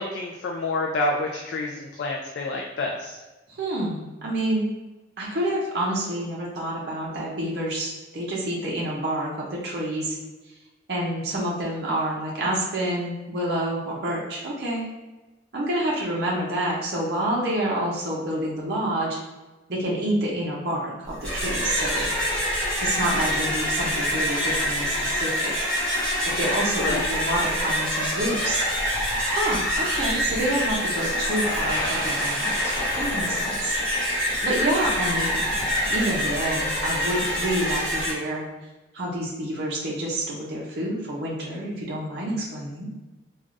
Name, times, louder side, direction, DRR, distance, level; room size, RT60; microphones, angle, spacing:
voice 1, 0.0-3.2 26.8-27.1, left 2 dB, 65° left, -1 dB, 0.3 m, -28 dB
voice 2, 3.5-4.6 5.2-10.2 10.9-14.9 15.5-19.2 19.7-22.1 22.8-25.5 26.3-28.6 29.2-33.8 34.3-38.4 38.9-42.9, right 1 dB, 55° right, -4 dB, 0.6 m, -28 dB
sound 1, 21.1-38.1, equal, 5° left, 0.7 m, -26 dB
3.2 x 2.3 x 2.5 m, 1.1 s
head